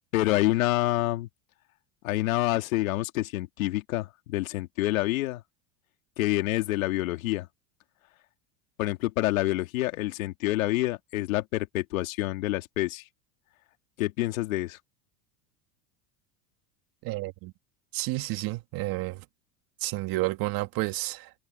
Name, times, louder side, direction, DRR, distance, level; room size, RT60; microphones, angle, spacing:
voice 1, 0.1-1.3 2.0-5.4 6.2-7.5 8.8-13.0 14.0-14.8, left 17 dB, 90° left, 2.6 m, -27 dB
voice 2, 17.0-17.5 17.9-19.3 19.8-21.3, right 20 dB, 60° right, 2.3 m, -31 dB
supercardioid pair, 110°, 40 cm